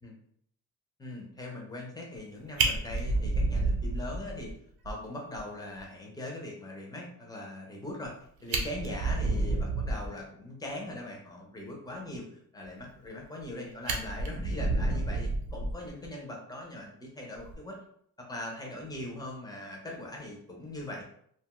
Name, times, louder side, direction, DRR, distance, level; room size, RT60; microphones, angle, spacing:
voice 1, 1.0-4.5 4.8-8.1 8.4-17.8 18.2-21.0, left 1 dB, 10° left, -1 dB, 0.5 m, -41 dB
Fire, 2.1-2.3 2.6-4.5 4.9-5.0 5.3-5.4 5.8-5.9 8.0-8.1 8.4-10.1 13.0-13.5 13.9-16.1 17.4-17.6, right 3 dB, 75° right, 0.6 m, -30 dB
2.7 x 2.3 x 2.9 m, 0.66 s
wide cardioid pair, 175°, 37 cm